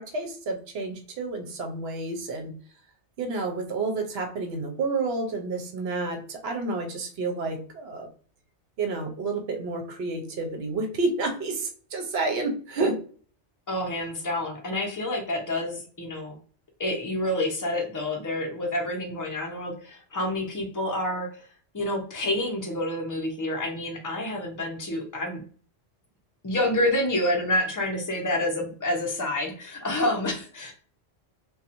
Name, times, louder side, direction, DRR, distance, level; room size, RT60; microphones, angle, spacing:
voice 1, 0.0-2.5 3.2-8.1 8.8-13.0, right 3 dB, 65° right, 4 dB, 0.8 m, -30 dB
voice 2, 13.7-16.4 16.8-21.5 21.7-25.4 26.4-30.7, left 1 dB, 20° left, 0 dB, 0.6 m, -28 dB
2.8 x 2.3 x 2.5 m, 0.43 s
omnidirectional pair, 1.2 m